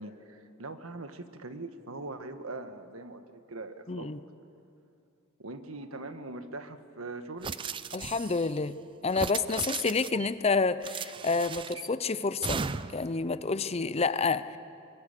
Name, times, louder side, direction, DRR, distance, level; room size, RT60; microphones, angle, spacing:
voice 1, 0.0-4.1 5.4-7.7, right 2 dB, 85° right, 8 dB, 1.4 m, -42 dB
voice 2, 3.9-4.2 7.9-8.7 9.0-12.6 12.9-14.6, left 4 dB, 30° left, 14 dB, 0.6 m, -29 dB
sound 1, 7.4-8.5 9.1-10.3 10.8-11.9 12.4-13.1, right 5 dB, 25° right, 0.4 m, -36 dB
23.5 x 22.5 x 6.7 m, 2.5 s
head